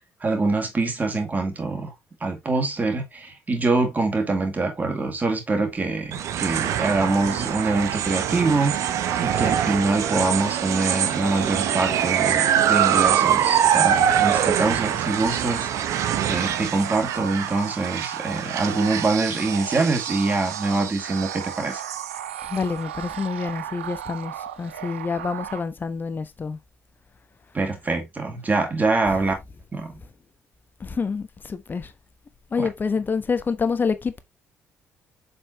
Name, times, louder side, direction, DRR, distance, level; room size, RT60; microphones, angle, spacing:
voice 1, 0.2-1.9 2.2-15.7 16.3-21.8 27.5-29.3 29.7-29.9 32.6-32.7, right 3 dB, 25° right, 2.7 m, -24 dB
sound 1, 6.1-22.6, right 9 dB, 55° right, 0.8 m, -24 dB
sound 2, 6.5-25.6, right 11 dB, 80° right, 0.4 m, -36 dB
voice 2, 22.5-26.6 29.1-29.2 30.8-31.9 32.5-34.2, left 5 dB, 30° left, 1.1 m, -27 dB
7.1 x 5.4 x 3.0 m
figure-of-eight pair, 45°, 6 cm